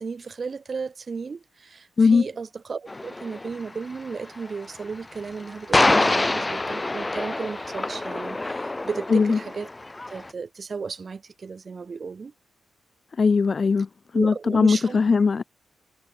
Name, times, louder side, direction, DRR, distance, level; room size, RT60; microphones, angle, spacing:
voice 1, 0.0-9.7 10.1-12.3 14.1-15.2, right 5 dB, 50° right, 5.6 m, -34 dB
sound 1, 2.9-10.3, left 2 dB, 25° left, 1.3 m, -26 dB
voice 2, 13.2-13.9 14.1-15.4, left 5 dB, 50° left, 0.7 m, -19 dB
hypercardioid pair, 40°, 0 cm